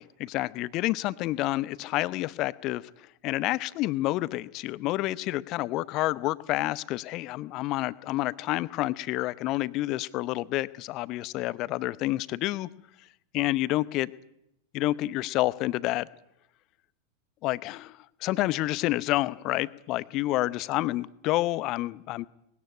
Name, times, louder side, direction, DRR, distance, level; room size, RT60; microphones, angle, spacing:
voice 1, 0.0-2.9 3.2-12.7 13.3-14.1 14.7-16.1 17.4-22.3, left 17 dB, 40° left, 19 dB, 0.7 m, -29 dB
20.5 x 16.5 x 9.8 m, 0.80 s
figure-of-eight pair, 90°, 0 cm